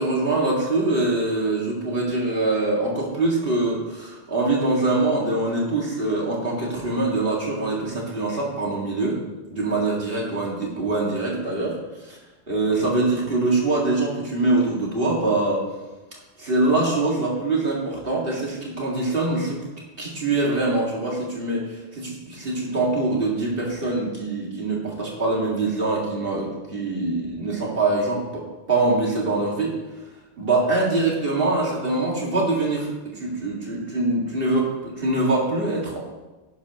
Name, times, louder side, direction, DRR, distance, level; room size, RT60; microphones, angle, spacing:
voice 1, 0.0-9.2 9.5-11.8 12.1-12.2 12.5-15.6 16.4-19.6 20.0-21.6 21.9-28.4 28.7-29.7 30.4-32.9 33.2-36.0, right 2 dB, 55° right, -3 dB, 2.6 m, -23 dB
11.0 x 11.0 x 3.1 m, 1.1 s
omnidirectional pair, 1.1 m